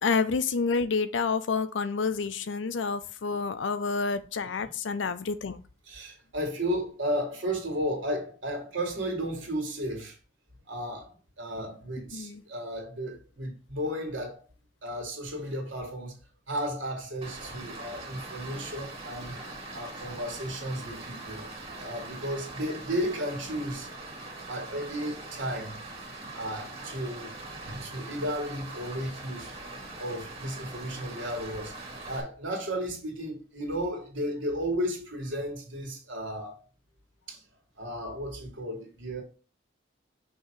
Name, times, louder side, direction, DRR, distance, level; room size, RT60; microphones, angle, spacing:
voice 1, 0.0-5.6 12.1-12.4, left 4 dB, 75° left, 0.6 m, -29 dB
voice 2, 5.9-10.2 10.7-14.4 14.8-16.2 16.5-21.5 21.8-23.9 24.5-25.8 26.3-27.3 27.6-29.5 30.0-36.6 37.3-37.4 37.8-39.2, equal, 90° right, 2.3 m, -34 dB
Stream, 17.2-32.2, right 2 dB, 30° right, 2.2 m, -42 dB
6.3 x 3.0 x 5.1 m
head